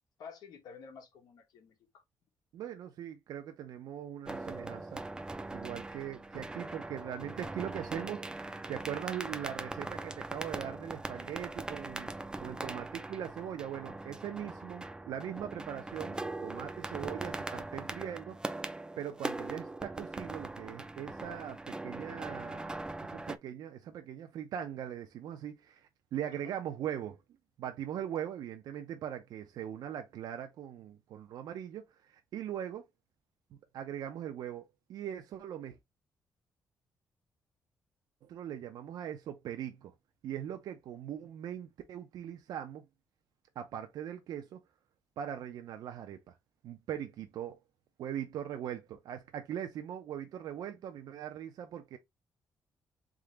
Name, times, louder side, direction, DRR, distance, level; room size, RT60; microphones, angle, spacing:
voice 1, 0.2-2.0 14.4-14.5 26.3-26.5, left 6 dB, 90° left, 1.7 m, -51 dB
voice 2, 2.5-5.0 5.5-18.4 19.0-22.8 23.1-27.2 27.6-32.9 33.7-35.8 38.2-39.9 40.2-42.8 43.6-44.6 45.2-46.4 46.6-47.6 48.0-52.0, right 10 dB, 85° right, 0.6 m, -41 dB
sound 1, 4.3-23.4, right 2 dB, 10° right, 0.4 m, -41 dB
3.8 x 3.7 x 3.2 m
cardioid pair, 110°, 7 cm